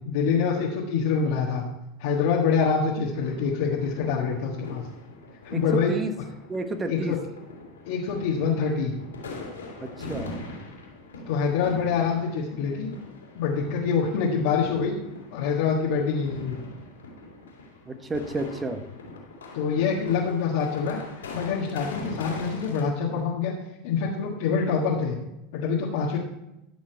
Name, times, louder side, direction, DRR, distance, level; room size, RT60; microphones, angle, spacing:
voice 1, 0.0-1.6 2.0-4.8 5.4-6.0 6.9-7.2 7.9-8.9 11.2-12.9 13.3-15.0 15.3-16.6 19.5-21.0 21.3-23.5 23.8-25.2 25.5-26.2, left 5 dB, 70° left, -4 dB, 1.6 m, -25 dB
sound 1, 3.2-22.8, left 2 dB, 90° left, 2.8 m, -42 dB
voice 2, 5.5-6.1 6.5-7.2 9.8-10.4 17.9-18.9, right 2 dB, 20° right, 8 dB, 1.3 m, -31 dB
13.0 x 6.3 x 4.6 m, 0.90 s
hypercardioid pair, 85°, 0 cm